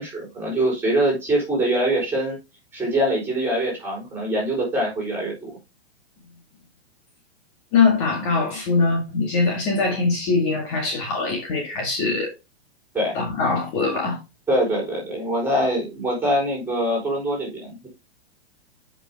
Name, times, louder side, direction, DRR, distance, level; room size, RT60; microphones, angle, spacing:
voice 1, 0.0-2.4 2.7-5.5 12.9-13.1 14.5-17.9, right 1 dB, 5° right, 3.9 m, -23 dB
voice 2, 7.7-12.3 13.1-14.2, left 4 dB, 35° left, 1.9 m, -22 dB
8.6 x 5.5 x 3.4 m
hypercardioid pair, 165°, 33 cm